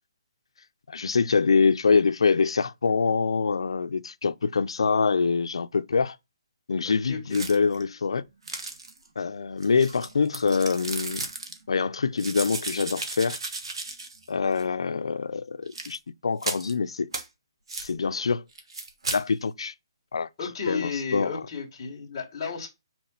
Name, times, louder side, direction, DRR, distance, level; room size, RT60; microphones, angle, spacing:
voice 1, 0.9-6.2 6.7-8.2 9.2-11.3 11.7-13.4 14.3-17.1 17.8-18.4 19.1-19.7 20.1-20.3 20.7-21.4, left 5 dB, 80° left, 0.5 m, -25 dB
voice 2, 6.8-7.4 20.4-22.7, left 5 dB, 20° left, 1.8 m, -33 dB
sound 1, 7.3-7.8 8.5-9.1 9.6-11.6 12.2-14.3 14.6-14.7 15.7-16.0 16.4-16.7 17.1-17.3 17.7-17.9 18.6-19.2, right 3 dB, 70° right, 1.5 m, -35 dB
6.1 x 4.5 x 3.9 m
hypercardioid pair, 180°, 3 cm